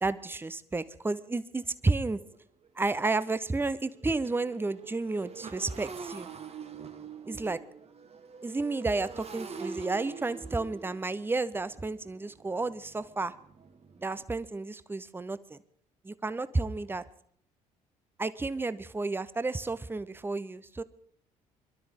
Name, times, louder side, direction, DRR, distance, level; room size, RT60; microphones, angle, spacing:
voice 1, 0.0-2.2 2.8-6.3 7.3-7.6 8.4-13.3 14.0-15.6 16.0-17.0 18.2-20.8, right 3 dB, 10° right, 15 dB, 0.6 m, -31 dB
Motorcycle, 1.6-1.7 2.2-2.4 2.6-14.2, right 5 dB, 35° right, 1.1 m, -45 dB
23.5 x 12.0 x 3.6 m, 0.63 s
figure-of-eight pair, 50°, 19 cm